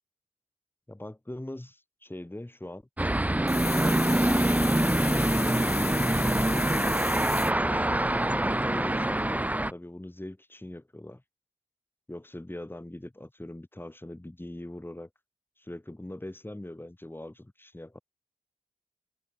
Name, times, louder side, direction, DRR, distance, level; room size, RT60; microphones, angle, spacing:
voice 1, 0.9-2.8 5.0-6.1 7.2-11.2 12.1-15.1 15.6-18.0, left 1 dB, 15° left, 3.2 m, -41 dB
sound 1, 3.0-9.7, right 1 dB, 10° right, 0.6 m, -25 dB
sound 2, 3.5-7.5, left 6 dB, 80° left, 2.0 m, -35 dB
wide cardioid pair, 110°, 16 cm